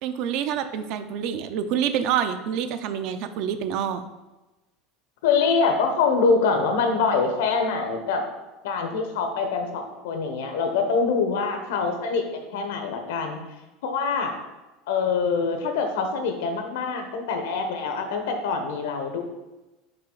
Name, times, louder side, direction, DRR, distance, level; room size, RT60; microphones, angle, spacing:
voice 1, 0.0-4.0, right 9 dB, 50° right, 10 dB, 0.4 m, -27 dB
voice 2, 5.2-8.2 8.6-13.4 13.8-14.3 14.9-19.2, left 4 dB, 90° left, 5 dB, 1.0 m, -24 dB
5.6 x 5.0 x 3.8 m, 1.1 s
cardioid pair, 170°, 0 cm